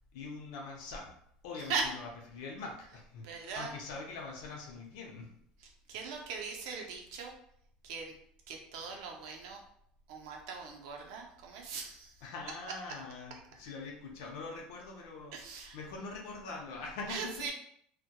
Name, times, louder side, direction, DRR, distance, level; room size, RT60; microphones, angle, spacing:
voice 1, 0.1-1.1 1.4-5.3 12.2-17.3, left 4 dB, 90° left, 0 dB, 0.5 m, -43 dB
voice 2, 3.2-3.7 5.9-7.3 7.8-8.1 8.5-9.6 10.1-12.1 15.3-15.8 17.1-17.5, right 5 dB, 85° right, 1 dB, 0.5 m, -39 dB
2.2 x 2.1 x 2.8 m, 0.67 s
cardioid pair, 170°, 3 cm